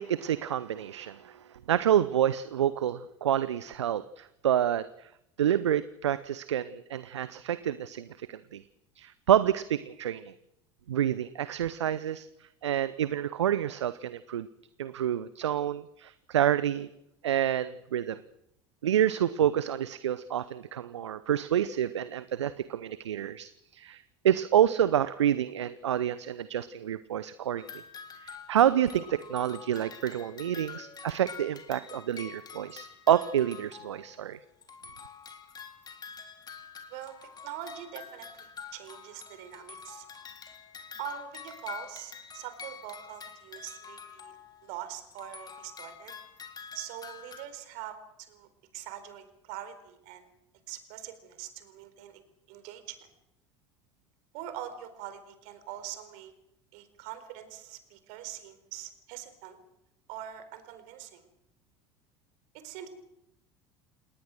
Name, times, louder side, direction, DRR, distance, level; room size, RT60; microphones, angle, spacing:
voice 1, 0.0-5.1 5.4-8.6 9.0-10.3 10.9-14.5 14.8-16.9 17.2-18.2 18.8-27.7 28.2-34.4, right 10 dB, 75° right, 16 dB, 0.8 m, -28 dB
sound 1, 27.6-34.3 34.6-44.8 45.1-47.5, left 6 dB, 25° left, 3.7 m, -46 dB
voice 2, 37.4-40.1 41.0-44.3 44.6-46.1 46.7-50.3 50.7-52.2 52.5-53.0 54.3-56.3 56.7-59.6 60.1-61.2 62.5-62.9, right 11 dB, 55° right, 10 dB, 4.2 m, -43 dB
29.0 x 19.5 x 6.5 m, 0.80 s
figure-of-eight pair, 70°, 15 cm